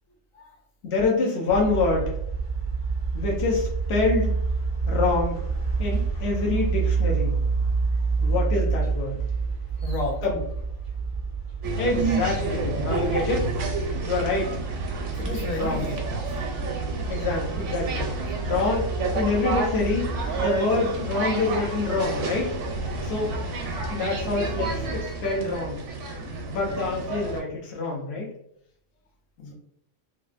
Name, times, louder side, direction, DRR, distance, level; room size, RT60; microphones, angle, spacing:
voice 1, 0.8-2.1 3.1-4.3 4.9-5.4 5.8-7.4 8.2-9.1 10.2-10.4 11.8-13.5 14.0-14.6 15.6-15.9 17.1-18.1 18.4-22.5 23.0-23.3 23.9-25.8 26.5-28.3, left 3 dB, 55° left, -1 dB, 1.0 m, -26 dB
sound 1, 1.5-20.4, right 4 dB, 40° left, 1.2 m, -28 dB
voice 2, 9.8-10.2 15.2-16.4 29.4-29.5, left 3 dB, 85° left, 0 dB, 1.1 m, -33 dB
sound 2, 11.6-27.4, right 2 dB, 70° right, 1.0 m, -30 dB
3.2 x 2.4 x 2.5 m, 0.70 s
omnidirectional pair, 1.4 m